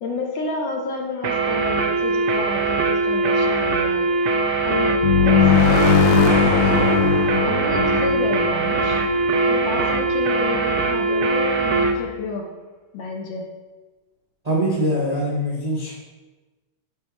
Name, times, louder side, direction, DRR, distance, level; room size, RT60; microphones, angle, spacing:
voice 1, 0.0-4.1 4.6-4.9 5.2-5.9 6.4-7.1 7.4-9.0 9.5-12.5 12.9-13.4, left 3 dB, 70° left, 1 dB, 1.5 m, -30 dB
sound 1, 1.2-12.0, right 3 dB, 75° right, 1.0 m, -21 dB
sound 2, 5.0-9.6, left 6 dB, 85° left, 1.5 m, -19 dB
voice 2, 14.4-15.9, equal, 45° right, -6 dB, 0.5 m, -23 dB
5.3 x 4.1 x 4.5 m, 1.2 s
omnidirectional pair, 2.3 m